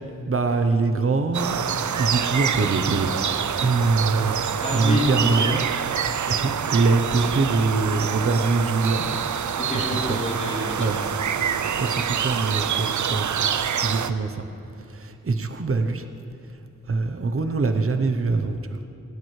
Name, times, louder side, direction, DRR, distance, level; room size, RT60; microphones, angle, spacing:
voice 1, 0.3-3.1 3.6-5.6 6.0-9.0 10.1-10.2 10.8-11.0 11.8-13.3 13.8-14.5 14.9-16.0 16.9-18.6, right 3 dB, 50° right, 7 dB, 0.9 m, -23 dB
sound 1, 1.3-14.1, right 8 dB, 80° right, 0.6 m, -26 dB
voice 2, 4.6-5.5 9.0-9.2 9.6-11.1, left 1 dB, 30° left, -11 dB, 3.3 m, -28 dB
18.0 x 17.5 x 3.3 m, 2.7 s
wide cardioid pair, 95°, 29 cm